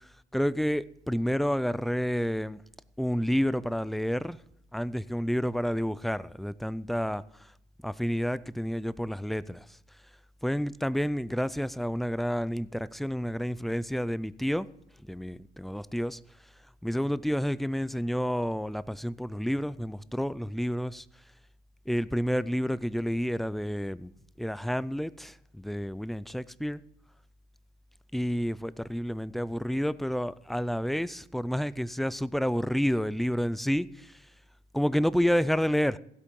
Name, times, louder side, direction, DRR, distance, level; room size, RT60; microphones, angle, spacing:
voice 1, 0.3-2.6 3.0-4.4 4.7-7.2 7.8-9.4 10.4-14.7 15.1-16.2 16.8-21.0 21.9-24.1 24.4-25.1 25.6-26.8 28.1-33.9 34.7-36.0, equal, ahead, 0.4 m, -29 dB
15.5 x 8.4 x 5.3 m
cardioid pair, 110°, 17 cm